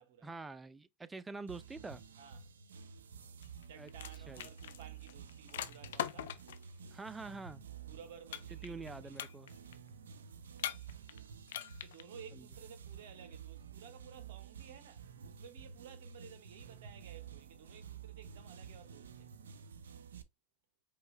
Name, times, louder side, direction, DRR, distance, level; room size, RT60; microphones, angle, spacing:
voice 1, 0.2-2.0 3.8-3.9 4.3-4.5 6.9-7.6 8.6-9.5 12.3-12.5, right 3 dB, 15° right, 0.5 m, -46 dB
sound 1, 1.5-20.2, right 7 dB, 90° right, 0.5 m, -51 dB
voice 2, 2.2-2.5 3.7-6.4 7.9-9.2 10.3-10.5 11.8-19.3, right 8 dB, 70° right, 0.8 m, -56 dB
sound 2, 3.4-3.6 3.9-6.6 8.3-8.9 9.2-9.7 10.6-11.2 11.5-12.0, left 11 dB, 80° left, 0.5 m, -41 dB
4.7 x 3.2 x 2.9 m
hypercardioid pair, 100°, 0 cm